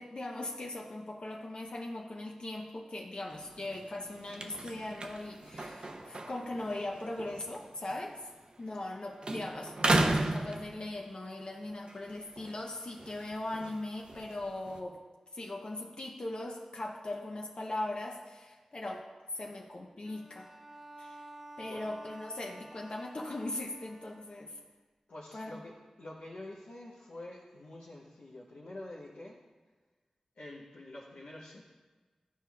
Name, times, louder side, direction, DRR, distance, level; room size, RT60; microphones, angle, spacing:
voice 1, 0.0-8.2 8.6-15.0 15.3-19.0 19.3-20.5 21.0-21.2 21.6-24.6 25.3-25.5, left 2 dB, 55° left, 0 dB, 0.7 m, -39 dB
sound 1, 3.3-8.9 9.2-11.2 11.7-14.8, right 2 dB, 50° right, 0.6 m, -35 dB
Bowed string instrument, 20.0-24.6, right 2 dB, 10° right, 0.6 m, -51 dB
voice 2, 21.6-21.9 25.1-25.7 26.0-29.4 30.4-31.6, left 1 dB, 90° left, -6 dB, 0.8 m, -47 dB
12.0 x 4.5 x 2.3 m, 1.3 s
cardioid pair, 45°, 2 cm